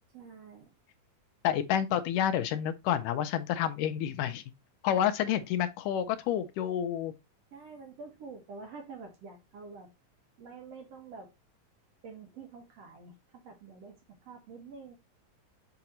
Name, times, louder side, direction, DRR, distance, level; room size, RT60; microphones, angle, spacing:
voice 1, 0.1-0.7 7.5-9.9 10.4-11.3 12.0-15.0, right 4 dB, 55° right, 2.3 m, -47 dB
voice 2, 1.4-4.4 4.8-7.1, left 10 dB, 80° left, 2.1 m, -29 dB
6.3 x 5.8 x 2.9 m
omnidirectional pair, 3.8 m